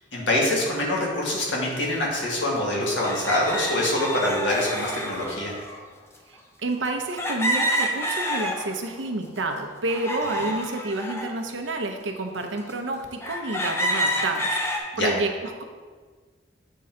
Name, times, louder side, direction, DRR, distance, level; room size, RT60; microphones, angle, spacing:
voice 1, 0.1-5.5 14.9-15.1, left 1 dB, 80° left, -3 dB, 1.7 m, -25 dB
sound 1, 1.9-2.0 3.0-5.8 7.2-8.9 9.4-11.3 12.0-12.1 12.7-12.8 13.2-14.8, equal, 15° left, 0.6 m, -28 dB
voice 2, 6.3-15.6, right 2 dB, 90° right, 4 dB, 0.7 m, -29 dB
8.2 x 3.8 x 4.4 m, 1.5 s
head